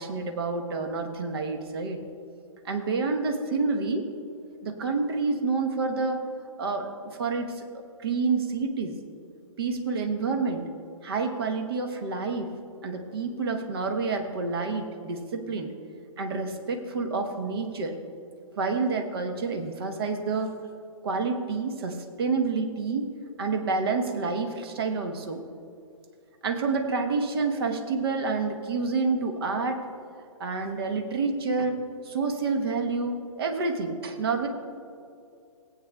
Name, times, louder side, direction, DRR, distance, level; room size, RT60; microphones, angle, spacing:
voice 1, 0.0-2.0 2.6-4.1 4.6-6.2 6.6-6.9 7.2-7.6 8.0-8.9 9.6-10.7 11.0-12.5 12.8-15.7 16.2-17.9 18.6-20.5 21.0-23.1 23.4-25.4 26.4-29.8 30.4-31.8 32.0-34.5, right 4 dB, 45° right, 4 dB, 1.1 m, -28 dB
17.5 x 8.4 x 2.3 m, 2.5 s
figure-of-eight pair, 125°, 17 cm